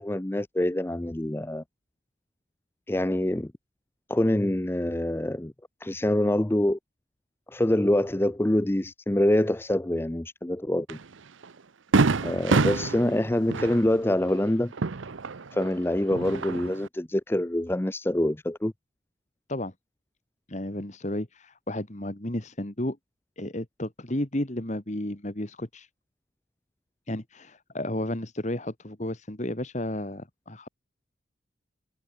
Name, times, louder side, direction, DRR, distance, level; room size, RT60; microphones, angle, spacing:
voice 1, 0.0-1.6 2.9-3.5 4.1-5.5 5.8-6.8 7.5-11.0 12.2-14.7 15.5-18.7, left 1 dB, 10° left, 0.5 m, -25 dB
Fireworks, 10.9-11.0 11.4-11.5 11.9-15.7 16.0-16.9, right 3 dB, 75° right, 0.8 m, -26 dB
voice 2, 20.5-23.0 23.4-25.9 27.1-30.7, left 1 dB, 35° left, 1.8 m, -32 dB
head